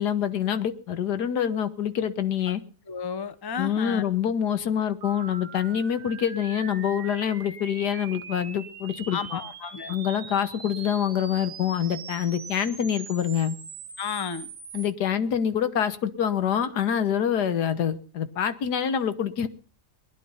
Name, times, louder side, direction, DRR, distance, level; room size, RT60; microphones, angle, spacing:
voice 1, 0.0-2.6 3.6-9.4 9.9-13.5 14.7-19.5, left 9 dB, 75° left, 12 dB, 1.7 m, -26 dB
voice 2, 2.9-4.0 9.1-10.0 14.0-14.5, left 6 dB, 20° left, 13 dB, 0.6 m, -32 dB
sound 1, 5.0-14.9, right 6 dB, 45° right, 0.9 m, -42 dB
19.5 x 11.0 x 5.6 m, 0.41 s
omnidirectional pair, 1.7 m